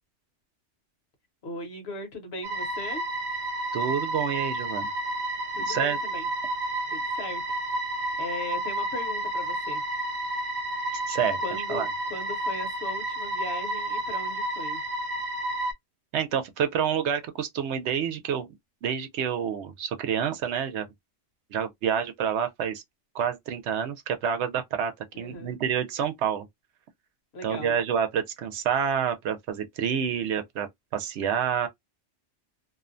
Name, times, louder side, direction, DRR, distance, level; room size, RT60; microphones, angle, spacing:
voice 1, 1.4-3.0 5.5-6.3 6.9-7.4 8.2-9.8 11.4-14.8 25.1-25.6 27.3-27.8, left 2 dB, 60° left, 1.1 m, -38 dB
sound 1, 2.4-15.7, right 1 dB, 45° right, 0.5 m, -31 dB
voice 2, 3.7-4.9 5.6-6.0 10.9-11.4 11.7-11.9 16.1-18.5 18.8-20.9 21.5-22.8 23.1-26.5 27.4-31.7, right 8 dB, 70° right, 0.8 m, -28 dB
2.6 x 2.1 x 2.4 m
omnidirectional pair, 1.2 m